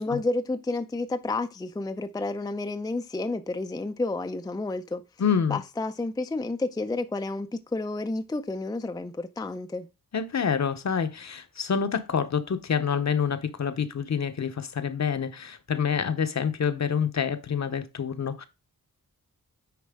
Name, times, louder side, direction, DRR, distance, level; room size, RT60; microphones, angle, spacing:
voice 1, 0.0-5.0 5.5-9.9, left 2 dB, 10° left, 0.5 m, -30 dB
voice 2, 5.2-5.6 10.1-18.5, left 7 dB, 50° left, 0.9 m, -27 dB
9.4 x 4.3 x 3.6 m
wide cardioid pair, 125°, 34 cm